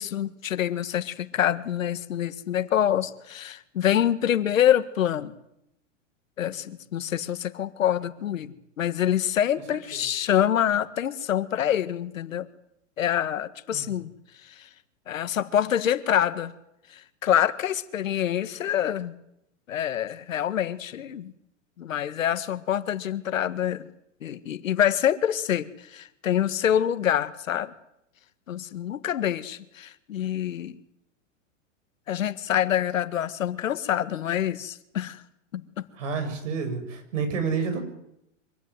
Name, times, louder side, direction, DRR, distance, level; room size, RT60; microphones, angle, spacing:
voice 1, 0.0-5.3 6.4-12.5 13.0-14.1 14.4-14.7 15.1-16.5 16.9-19.1 19.7-21.3 21.8-23.8 24.2-27.7 28.5-30.8 32.1-35.2 35.5-35.6, left 10 dB, 85° left, 12 dB, 1.8 m, -26 dB
voice 2, 36.0-37.8, right 5 dB, 70° right, 8 dB, 7.4 m, -29 dB
25.0 x 15.5 x 9.8 m, 0.81 s
hypercardioid pair, 135°, 39 cm